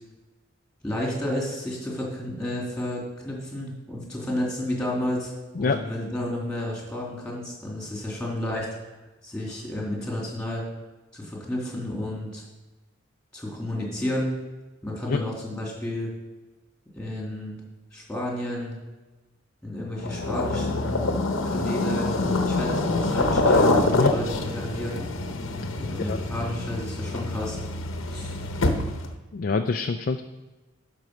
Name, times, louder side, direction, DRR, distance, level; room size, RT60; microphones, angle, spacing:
voice 1, 0.8-5.3 5.6-8.7 9.2-10.6 11.1-12.4 13.3-14.4 14.8-16.1 17.0-17.6 17.9-18.8 19.6-21.1 21.4-25.0 25.8-27.6 28.1-28.4, left 1 dB, 5° left, -3 dB, 2.7 m, -31 dB
sound 1, 20.0-29.1, left 2 dB, 70° left, 0.9 m, -25 dB
voice 2, 29.3-30.2, left 4 dB, 45° left, 6 dB, 0.4 m, -25 dB
11.0 x 4.6 x 6.4 m, 1.2 s
head